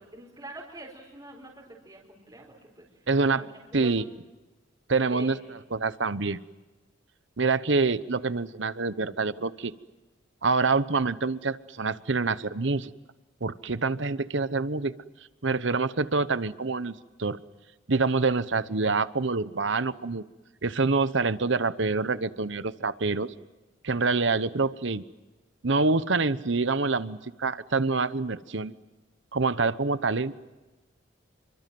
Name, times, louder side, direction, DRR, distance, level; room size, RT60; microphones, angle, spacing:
voice 1, 0.0-3.9 5.1-5.4, right 1 dB, 20° right, -2 dB, 4.6 m, -45 dB
voice 2, 3.1-3.4 3.7-4.0 4.9-5.4 5.7-6.4 7.4-9.7 10.4-12.9 13.4-14.9 15.4-17.4 17.9-20.2 20.6-23.3 23.8-25.0 25.6-28.7 29.3-30.4, right 3 dB, 60° right, 15 dB, 1.0 m, -26 dB
29.0 x 24.5 x 7.8 m, 1.2 s
head